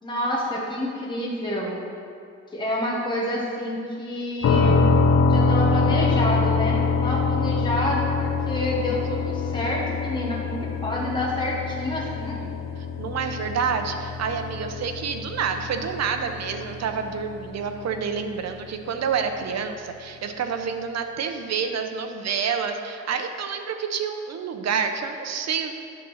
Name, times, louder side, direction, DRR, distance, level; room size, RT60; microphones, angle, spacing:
voice 1, 0.0-1.8 2.5-4.9 5.3-12.5, left 1 dB, 15° left, -4 dB, 1.3 m, -28 dB
sound 1, 4.4-18.1, left 4 dB, 60° left, 0.7 m, -25 dB
voice 2, 12.8-25.7, right 6 dB, 60° right, 6 dB, 0.7 m, -28 dB
10.5 x 3.9 x 6.4 m, 2.4 s
cardioid pair, 125°, 29 cm